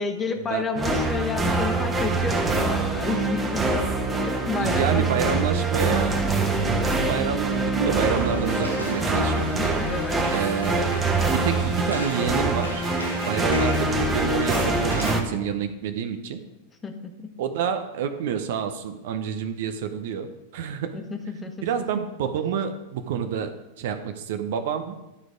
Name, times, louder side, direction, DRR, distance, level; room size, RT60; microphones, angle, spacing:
voice 1, 0.0-6.0 9.6-10.3 16.8-17.3 20.9-21.7, left 4 dB, 15° left, 5 dB, 1.2 m, -31 dB
sound 1, 0.8-15.2, right 2 dB, 15° right, 1.2 m, -24 dB
voice 2, 4.5-6.2 7.0-9.8 10.3-11.0 11.3-12.8 13.3-16.4 17.4-21.0 21.6-25.0, right 7 dB, 55° right, 8 dB, 0.7 m, -28 dB
sound 2, 8.0-15.1, left 1 dB, 85° left, 1.3 m, -38 dB
11.5 x 4.7 x 5.1 m, 0.98 s
figure-of-eight pair, 90°, 0 cm